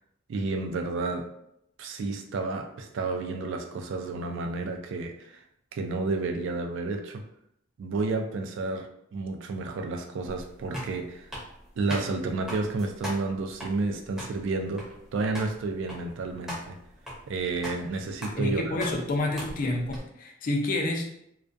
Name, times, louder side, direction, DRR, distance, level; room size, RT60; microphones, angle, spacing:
voice 1, 0.3-1.3 1.8-5.4 5.7-7.2 7.8-8.9 9.1-11.3 11.8-14.8 15.1-16.8 17.3-18.8, right 3 dB, 65° right, 4 dB, 0.3 m, -31 dB
sound 1, 10.3-20.0, equal, 5° right, 0.6 m, -41 dB
voice 2, 18.4-21.1, left 2 dB, 40° left, 2 dB, 0.4 m, -28 dB
2.3 x 2.2 x 2.5 m, 0.75 s
head